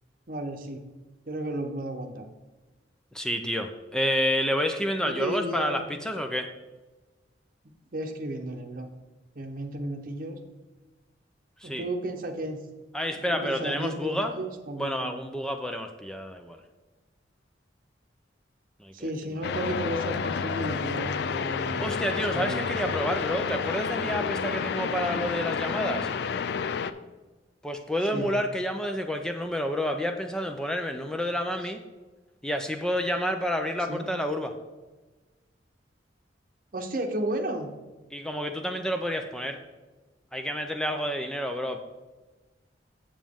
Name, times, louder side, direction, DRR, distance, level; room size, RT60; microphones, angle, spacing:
voice 1, 0.3-0.8 1.3-2.2 5.0-5.9 7.9-8.9 9.4-10.4 11.6-12.6 13.1-15.4 18.9-22.7 28.1-28.3 33.9-34.1 36.7-37.7, right 1 dB, 50° right, 4 dB, 0.9 m, -33 dB
voice 2, 3.1-6.5 11.6-11.9 12.9-14.3 14.8-16.6 18.8-18.9 21.8-26.1 27.6-31.8 32.4-34.5 38.1-39.6 40.3-41.8, equal, 5° left, 5 dB, 0.4 m, -29 dB
sound 1, 19.4-26.9, left 6 dB, 60° left, 0.3 m, -30 dB
7.3 x 7.2 x 3.6 m, 1.2 s
head